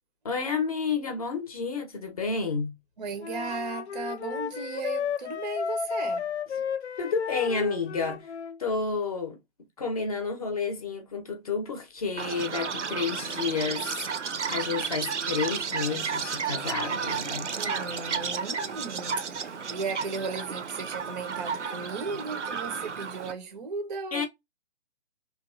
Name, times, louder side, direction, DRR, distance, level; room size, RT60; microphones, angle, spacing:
voice 1, 0.2-2.7 7.0-8.3 8.6-9.4 9.8-17.5 24.1-24.3, left 5 dB, 35° left, 0.7 m, -30 dB
voice 2, 3.0-6.3 17.5-24.3, right 4 dB, 40° right, 0.4 m, -36 dB
Wind instrument woodwind instrument, 3.2-8.6, left 6 dB, 75° left, 0.5 m, -33 dB
Chirp tweet, 12.2-23.3, right 6 dB, 90° right, 0.5 m, -32 dB
2.9 x 2.1 x 2.4 m
figure-of-eight pair, 140°, 34 cm